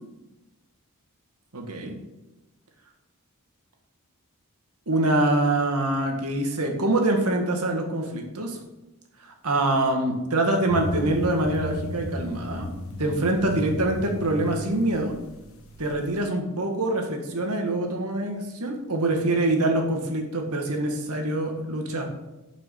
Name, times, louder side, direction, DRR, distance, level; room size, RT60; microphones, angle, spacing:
voice 1, 1.5-2.0 4.9-8.6 9.2-12.7 13.0-15.1 15.8-22.1, right 2 dB, 80° right, 3 dB, 1.9 m, -25 dB
sound 1, 10.7-16.2, left 1 dB, 65° left, 1.4 m, -34 dB
6.9 x 6.2 x 6.5 m, 1.0 s
head